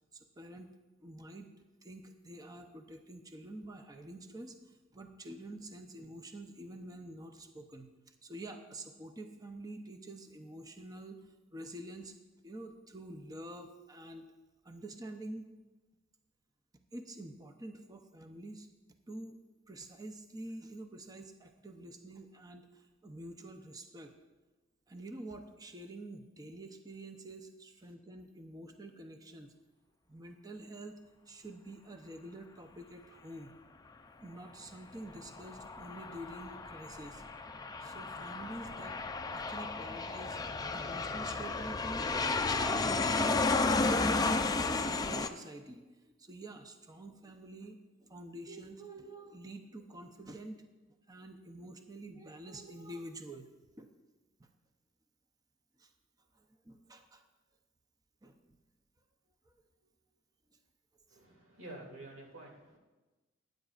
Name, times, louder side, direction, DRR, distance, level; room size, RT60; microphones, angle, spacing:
voice 1, 0.1-0.7 1.0-1.5 1.8-12.1 12.4-14.3 14.6-15.5 16.9-18.7 19.1-19.4 19.7-24.1 24.9-29.5 30.1-31.0 31.3-33.5 34.2-37.2 37.8-39.0 39.3-40.4 40.7-42.2 42.8-45.9 46.2-50.6 51.1-53.5 53.8-53.9 54.4-54.5 55.8-55.9 56.3-57.2 58.2-58.6 59.8-59.9 61.1-61.4, right 1 dB, 20° right, 5 dB, 0.6 m, -47 dB
Aircraft, 35.1-45.3, left 3 dB, 20° left, 0.4 m, -33 dB
voice 2, 61.1-62.8, right 2 dB, 80° right, -1 dB, 2.5 m, -49 dB
17.5 x 9.2 x 2.4 m, 1.2 s
head